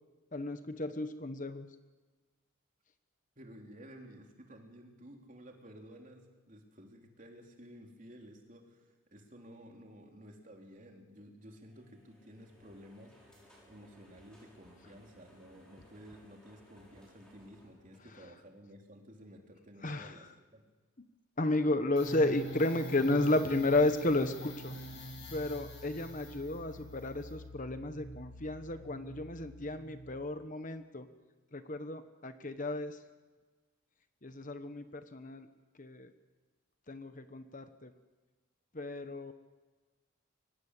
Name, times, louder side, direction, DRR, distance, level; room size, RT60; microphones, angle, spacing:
voice 1, 0.3-1.7 19.8-20.1 21.4-24.7 25.3-31.1 31.5-33.0 34.2-35.5 35.8-36.1 36.9-37.9 38.7-39.3, left 2 dB, 40° left, 9 dB, 1.1 m, -33 dB
voice 2, 3.3-13.2 13.7-20.6, equal, 40° right, 2 dB, 3.4 m, -53 dB
sound 1, 11.4-18.7, equal, 5° left, 6.8 m, -62 dB
sound 2, 22.0-30.4, right 1 dB, 60° left, 7.6 m, -45 dB
24.0 x 19.0 x 8.3 m, 1.3 s
head